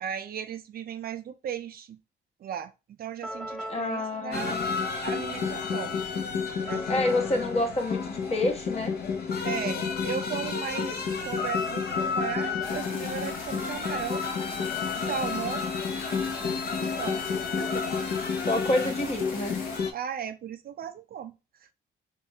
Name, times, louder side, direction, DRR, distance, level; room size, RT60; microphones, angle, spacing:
voice 1, 0.0-2.0 2.4-2.7 3.0-4.6 5.0-6.0 6.7-7.1 9.4-14.2 14.9-15.7 16.8-17.2 17.6-17.8 18.7-18.8 19.9-21.4, right 8 dB, 50° right, 0.4 m, -36 dB
sound 1, 3.2-9.0, right 1 dB, ahead, 0.7 m, -43 dB
voice 2, 3.7-4.7 6.9-8.9 18.5-19.5, left 2 dB, 30° left, 1.0 m, -28 dB
sound 2, 4.3-19.9, left 5 dB, 55° left, 0.8 m, -30 dB
sound 3, 12.6-19.8, left 4 dB, 85° left, 1.2 m, -41 dB
3.4 x 3.1 x 2.7 m
cardioid pair, 90°, 20 cm